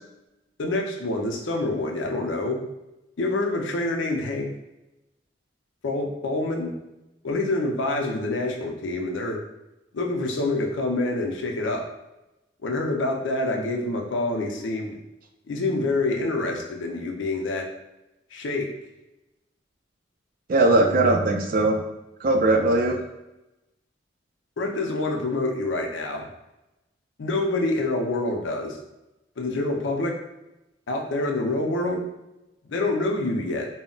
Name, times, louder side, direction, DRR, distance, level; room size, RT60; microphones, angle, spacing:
voice 1, 0.6-2.6 3.2-4.5 5.8-6.8 7.2-9.4 9.9-11.8 12.6-15.0 15.5-17.7 18.3-18.7 24.6-26.3 27.2-28.8 29.4-30.1 30.9-32.1 32.6-33.7, left 2 dB, 85° left, 1 dB, 0.5 m, -26 dB
voice 2, 20.5-21.8 22.2-23.0, right 2 dB, 50° right, 4 dB, 0.4 m, -19 dB
2.2 x 2.0 x 3.7 m, 0.95 s
head